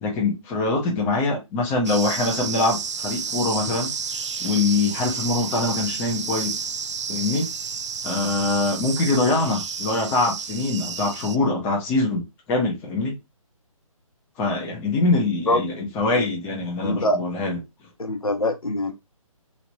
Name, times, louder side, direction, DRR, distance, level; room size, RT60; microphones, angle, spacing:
voice 1, 0.0-3.9 4.4-6.6 7.1-7.5 8.0-13.1 14.4-17.6, left 3 dB, 10° left, 0.6 m, -24 dB
sound 1, 1.8-11.4, right 6 dB, 55° right, 0.4 m, -31 dB
voice 2, 16.8-17.2 18.0-18.9, left 1 dB, 80° left, 0.9 m, -23 dB
3.1 x 2.8 x 2.6 m
figure-of-eight pair, 140°, 18 cm